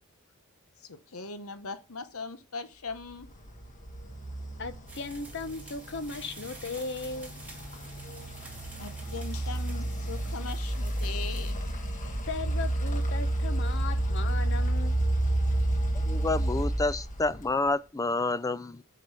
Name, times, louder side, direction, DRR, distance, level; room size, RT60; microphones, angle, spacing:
voice 1, 0.9-3.3 8.8-11.6, left 4 dB, 80° left, 1.0 m, -40 dB
sound 1, 3.2-17.7, right 1 dB, 35° left, 1.5 m, -31 dB
voice 2, 4.6-7.4 12.3-15.1, left 4 dB, 55° left, 0.8 m, -37 dB
sound 2, 4.9-11.5, right 2 dB, 10° right, 1.8 m, -50 dB
voice 3, 16.1-18.8, left 2 dB, 15° left, 0.4 m, -29 dB
7.6 x 5.3 x 6.8 m
head